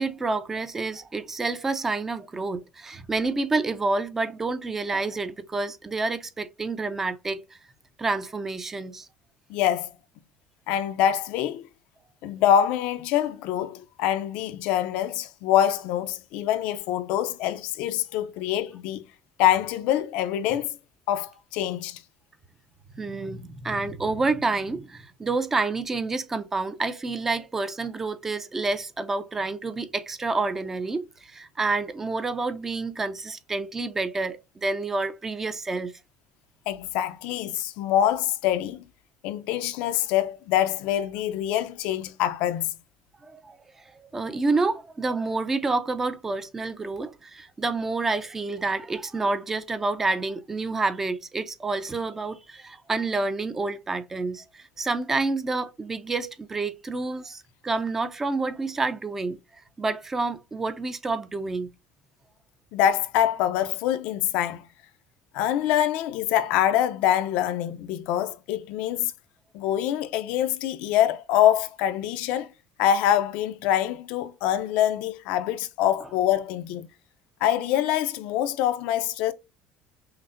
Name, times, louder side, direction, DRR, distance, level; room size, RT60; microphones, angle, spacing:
voice 1, 0.0-7.4 8.0-9.1 22.9-35.9 43.2-43.6 43.9-59.4 59.8-61.7, right 3 dB, 15° right, 0.4 m, -28 dB
voice 2, 9.5-9.9 10.7-11.7 12.2-19.0 19.4-20.8 21.1-22.0 36.7-38.8 39.2-42.7 62.7-64.6 65.3-69.1 69.5-72.5 72.8-76.9 77.4-79.3, left 11 dB, 70° left, 0.5 m, -25 dB
5.8 x 2.1 x 2.5 m
cardioid pair, 135°, 2 cm